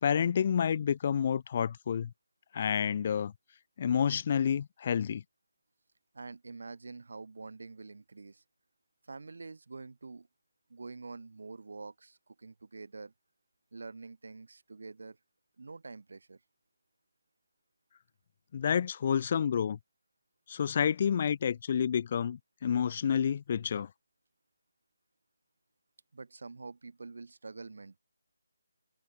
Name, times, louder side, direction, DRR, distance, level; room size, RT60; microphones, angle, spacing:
voice 1, 0.0-2.1 2.5-3.3 3.8-5.2 18.5-19.8 20.5-23.9, left 8 dB, 40° left, 0.5 m, -29 dB
voice 2, 6.1-8.4 9.1-10.3 10.7-13.1 13.7-15.2 15.6-16.4 26.1-28.0, right 3 dB, 70° right, 1.5 m, -46 dB
figure-of-eight pair, 160°, 0 cm